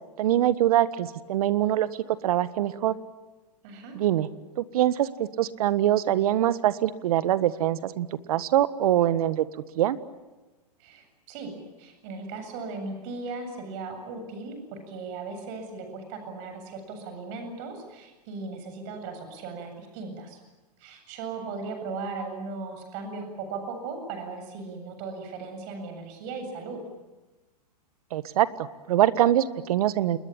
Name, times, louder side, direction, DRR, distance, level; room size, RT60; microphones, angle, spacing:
voice 1, 0.2-1.9 2.2-3.0 3.9-4.3 4.6-9.5 9.8-10.0 28.1-30.2, right 12 dB, 60° right, 15 dB, 1.6 m, -24 dB
voice 2, 3.6-4.0 10.8-20.4 20.8-26.9, right 4 dB, 45° right, 6 dB, 7.9 m, -37 dB
28.5 x 21.0 x 8.9 m, 1.2 s
hypercardioid pair, 120°, 21 cm